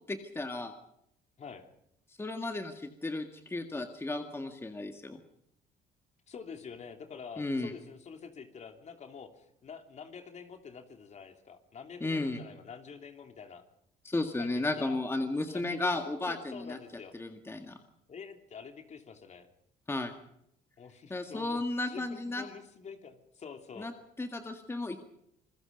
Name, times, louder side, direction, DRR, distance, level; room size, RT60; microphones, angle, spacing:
voice 1, 0.1-0.7 2.2-5.2 7.4-7.7 12.0-12.4 14.0-16.8 17.1-17.8 19.9-20.1 21.1-22.4 23.8-23.9 24.2-25.0, left 2 dB, 15° left, 6 dB, 1.9 m, -34 dB
voice 2, 6.3-13.6 14.4-15.0 15.5-16.0 16.3-17.1 18.1-19.5 20.8-23.9, left 6 dB, 40° left, 6 dB, 3.1 m, -47 dB
27.5 x 21.0 x 5.3 m, 0.77 s
cardioid pair, 110°, 17 cm